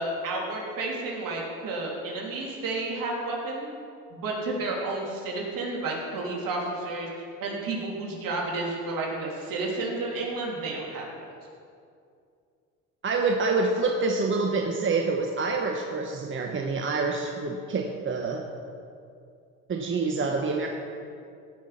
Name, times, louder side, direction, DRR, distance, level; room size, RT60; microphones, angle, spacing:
voice 1, 0.0-3.7 4.1-7.1 7.4-11.2, right 2 dB, 60° right, -2 dB, 3.2 m, -31 dB
voice 2, 13.0-18.4 19.7-20.7, right 3 dB, 30° right, 2 dB, 1.1 m, -27 dB
16.5 x 6.2 x 5.7 m, 2.4 s
supercardioid pair, 75°, 38 cm